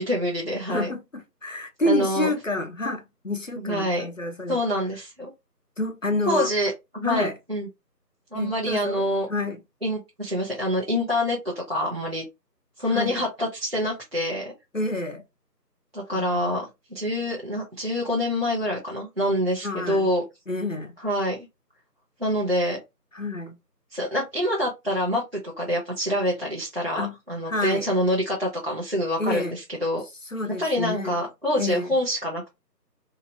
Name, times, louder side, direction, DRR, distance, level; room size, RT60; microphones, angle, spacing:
voice 1, 0.0-0.9 1.9-2.3 3.6-4.1 4.5-5.3 6.3-7.7 8.3-9.3 9.8-12.2 12.8-14.5 15.9-20.2 21.0-21.5 22.2-22.8 23.9-30.0 30.6-32.5, equal, 40° right, 0.7 m, -26 dB
voice 2, 0.7-4.6 5.8-6.5 7.0-7.3 8.3-9.6 12.9-13.2 14.7-15.2 16.1-16.6 19.6-20.1 20.5-20.9 23.1-23.5 27.0-27.1 27.5-27.9 29.2-29.5 30.3-31.2 31.6-31.9, left 2 dB, 55° left, 0.5 m, -29 dB
2.8 x 2.3 x 2.8 m
figure-of-eight pair, 170°, 50 cm